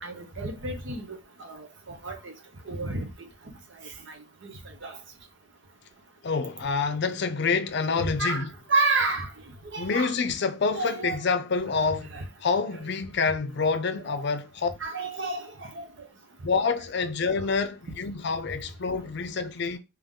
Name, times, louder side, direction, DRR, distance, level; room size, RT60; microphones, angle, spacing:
voice 1, 0.0-2.3 2.7-3.1 4.1-4.2 4.4-4.5 4.8-5.0 8.0-9.3 9.7-10.1 10.7-11.2 12.1-12.2 14.1-14.2 14.8-15.9, right 3 dB, 60° right, 0.9 m, -30 dB
voice 2, 6.2-8.5 9.8-12.1 12.4-14.7 16.4-19.8, left 4 dB, 60° left, 0.5 m, -27 dB
3.6 x 3.0 x 3.6 m
head